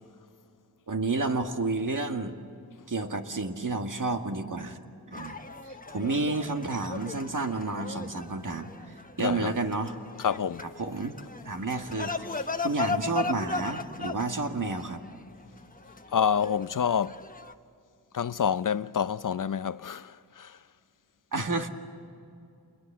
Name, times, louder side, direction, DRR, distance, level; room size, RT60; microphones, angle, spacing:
voice 1, 0.9-2.4 2.9-4.8 5.1-5.4 5.6-9.9 10.8-11.2 11.4-12.3 12.6-15.0 21.3-21.7, right 3 dB, 50° right, 2.1 m, -30 dB
sound 1, 5.1-17.5, left 4 dB, 20° left, 1.1 m, -37 dB
voice 2, 9.2-9.5 10.2-10.7 16.1-17.2 18.1-20.6, left 7 dB, 55° left, 0.6 m, -28 dB
28.0 x 21.5 x 7.5 m
cardioid pair, 50°, 39 cm